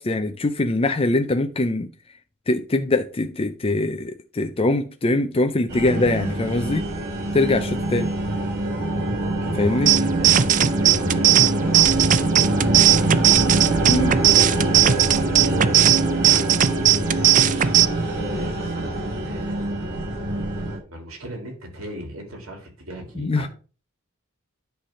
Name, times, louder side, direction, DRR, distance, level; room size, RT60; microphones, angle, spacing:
voice 1, 0.0-1.9 2.5-6.9 7.3-8.1 9.6-9.9 13.8-14.1 23.2-23.5, left 2 dB, 25° left, 0.5 m, -22 dB
sound 1, 5.7-20.8, right 1 dB, 55° right, 3.7 m, -25 dB
voice 2, 8.9-12.8 14.5-16.7 17.1-19.6 20.9-23.5, right 1 dB, 70° right, 3.2 m, -38 dB
sound 2, 9.9-17.9, right 11 dB, 40° right, 0.5 m, -18 dB
10.0 x 3.4 x 6.4 m
head